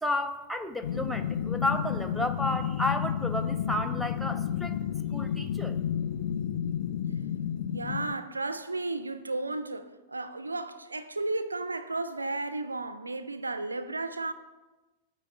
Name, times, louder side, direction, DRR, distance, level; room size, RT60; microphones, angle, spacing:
voice 1, 0.0-4.8 5.1-5.7, left 1 dB, ahead, 0.5 m, -32 dB
sound 1, 0.8-8.1, left 9 dB, 55° left, 0.3 m, -31 dB
voice 2, 7.7-14.3, right 2 dB, 80° right, 0.4 m, -33 dB
9.2 x 3.1 x 6.6 m
figure-of-eight pair, 90°, 0 cm